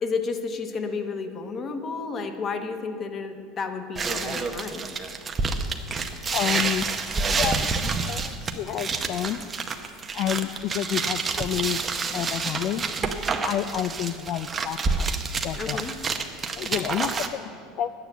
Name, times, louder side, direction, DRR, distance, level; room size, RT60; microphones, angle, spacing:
voice 1, 0.0-4.8 15.6-15.9 16.7-16.9, left 4 dB, 25° left, 7 dB, 0.9 m, -31 dB
sound 1, 4.0-17.3, right 4 dB, 20° right, 0.7 m, -28 dB
voice 2, 6.3-9.5 9.7-9.9 10.1-11.8 12.1-15.1 15.4-15.8 16.6-18.0, left 11 dB, 45° left, 10 dB, 0.3 m, -30 dB
12.0 x 9.3 x 7.1 m, 2.5 s
cardioid pair, 155°, 0 cm